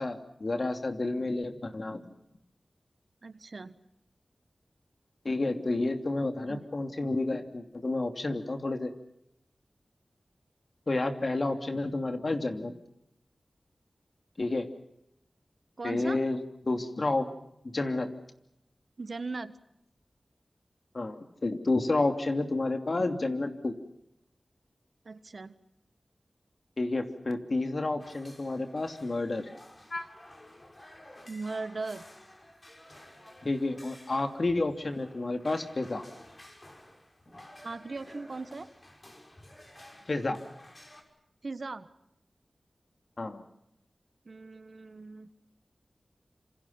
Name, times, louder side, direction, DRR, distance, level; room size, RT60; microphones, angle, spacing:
voice 1, 0.0-2.0 5.2-8.9 10.9-12.7 14.4-14.7 15.8-17.3 17.6-18.1 20.9-23.7 26.8-29.5 29.9-30.0 33.4-36.1 40.1-40.4 43.2-43.4, left 2 dB, 55° left, 6 dB, 2.9 m, -30 dB
voice 2, 3.2-3.8 6.5-6.6 15.8-16.2 19.0-19.6 25.0-25.5 31.3-32.0 37.6-38.7 41.4-41.9 44.2-45.3, right 3 dB, 60° right, 12 dB, 1.4 m, -38 dB
sound 1, 28.0-41.0, left 1 dB, 35° left, 5.9 m, -53 dB
27.5 x 26.5 x 5.8 m, 0.80 s
cardioid pair, 50°, 0 cm